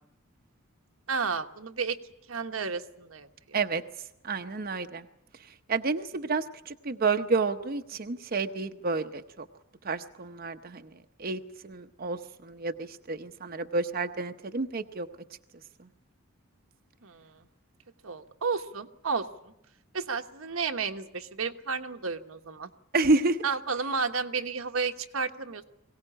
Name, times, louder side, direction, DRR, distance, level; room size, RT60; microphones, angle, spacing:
voice 1, 1.1-2.0 2.3-3.6 17.0-17.4 18.0-19.5 19.9-22.7 23.4-25.6, right 5 dB, 85° right, 6 dB, 1.3 m, -32 dB
voice 2, 4.2-5.0 5.7-9.5 9.8-10.9 11.2-15.1 22.9-23.4, right 3 dB, 45° right, 7 dB, 0.8 m, -29 dB
22.5 x 17.5 x 9.9 m, 0.85 s
head